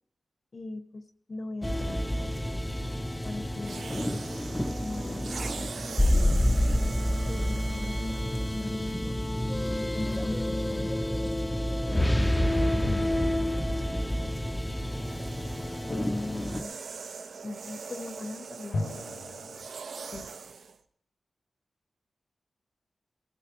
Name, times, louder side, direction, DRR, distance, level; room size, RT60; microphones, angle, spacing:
voice 1, 0.5-2.0 3.2-6.1 7.3-8.3 8.5-9.2 9.8-11.0 11.8-13.1 15.9-16.8 17.4-18.8 20.1-20.3, left 2 dB, 40° left, 9 dB, 0.9 m, -39 dB
sound 1, 1.6-16.6, left 1 dB, 10° left, 0.5 m, -28 dB
sound 2, 3.6-9.1 9.9-10.1 14.1-20.8, right 5 dB, 85° right, 0.7 m, -42 dB
sound 3, 18.7-19.7, left 2 dB, 80° left, 2.1 m, -39 dB
19.0 x 11.5 x 3.0 m, 0.65 s
wide cardioid pair, 150°, 0 cm